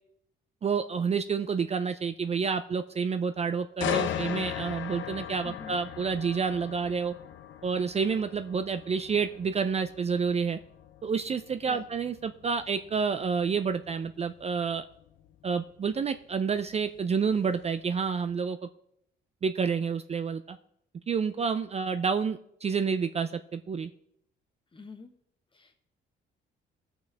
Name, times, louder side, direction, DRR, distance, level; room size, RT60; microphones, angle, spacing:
voice 1, 0.6-7.1 7.6-10.6 11.0-14.8 15.4-18.6 19.4-20.6 21.1-23.9, right 5 dB, 30° right, 9 dB, 0.4 m, -29 dB
sound 1, 3.8-17.6 18.1-18.3, left 9 dB, 75° left, 0.7 m, -39 dB
voice 2, 5.4-5.8 11.6-11.8 24.7-25.1 25.5-25.8, left 4 dB, 25° left, 6 dB, 1.2 m, -46 dB
16.5 x 5.9 x 3.4 m, 0.76 s
cardioid pair, 90°, 20 cm